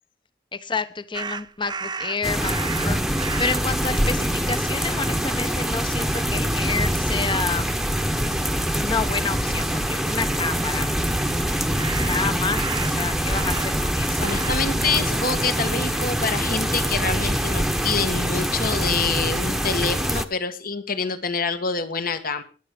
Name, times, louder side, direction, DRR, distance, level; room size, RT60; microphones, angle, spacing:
voice 1, 0.5-3.0 3.4-7.7 8.7-10.9 11.9-14.2, left 4 dB, 30° left, 12 dB, 1.0 m, -29 dB
sound 1, 1.1-3.7 4.5-4.7 5.0-5.9 11.7-13.9 14.2-14.7 15.0-16.6, right 5 dB, 25° right, 0.6 m, -34 dB
sound 2, 2.2-20.2, equal, ahead, 1.1 m, -24 dB
voice 2, 14.2-22.4, left 5 dB, 55° left, 9 dB, 1.7 m, -26 dB
20.5 x 8.3 x 5.1 m, 0.37 s
head